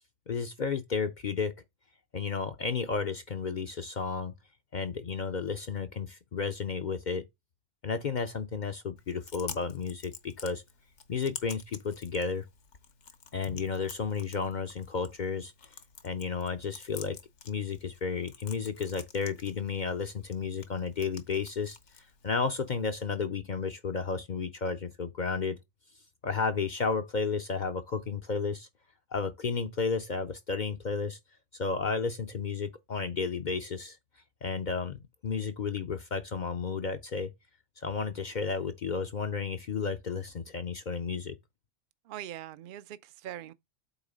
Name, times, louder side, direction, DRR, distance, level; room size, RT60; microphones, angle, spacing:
voice 1, 0.3-1.5 2.1-4.3 4.7-7.2 7.8-10.6 11.1-12.5 13.3-15.5 16.0-17.2 17.5-21.8 22.2-25.6 26.2-28.7 29.1-31.2 31.5-34.0 34.4-37.3 37.8-41.4, left 5 dB, 50° left, 0.6 m, -32 dB
Chewing mastication, 9.0-23.0, left 6 dB, 70° left, 1.3 m, -50 dB
voice 2, 42.0-43.5, right 12 dB, 60° right, 0.6 m, -42 dB
8.1 x 3.1 x 5.0 m
omnidirectional pair, 1.2 m